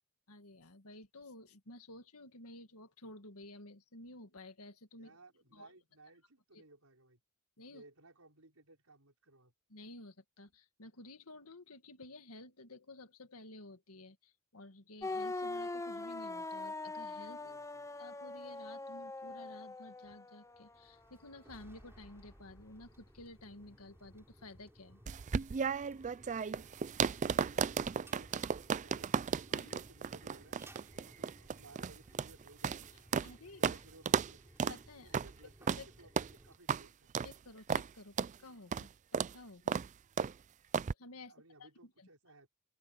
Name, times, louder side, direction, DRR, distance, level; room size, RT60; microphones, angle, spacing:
voice 1, 0.3-5.2 5.5-5.7 6.5-6.6 7.6-7.8 9.7-17.6 18.0-25.0 29.5-29.8 31.6-31.7 33.2-33.8 34.7-35.1 35.8-35.9 37.2-39.8 41.0-41.3 41.6-42.1, left 2 dB, 75° left, 2.0 m, -53 dB
voice 2, 5.0-7.2 7.7-9.5 17.4-17.9 27.0-29.2 29.5-30.6 30.9-33.1 33.4-34.6 35.0-37.2 41.3-42.5, right 2 dB, 75° right, 5.5 m, -61 dB
sound 1, 15.0-20.7, left 2 dB, 15° left, 0.6 m, -42 dB
sound 2, 20.5-36.6, equal, 10° right, 3.9 m, -60 dB
sound 3, 25.1-33.3 33.6-33.8 34.1-34.3 34.6-34.8 35.1-35.3 35.7-35.8 36.2-36.3 36.7-36.8 37.1-37.3 37.7-37.9 38.2-38.3 38.7-38.9 39.1-39.3 39.7-39.9 40.2-40.3 40.7-40.9, right 6 dB, 35° right, 0.4 m, -34 dB
open air
head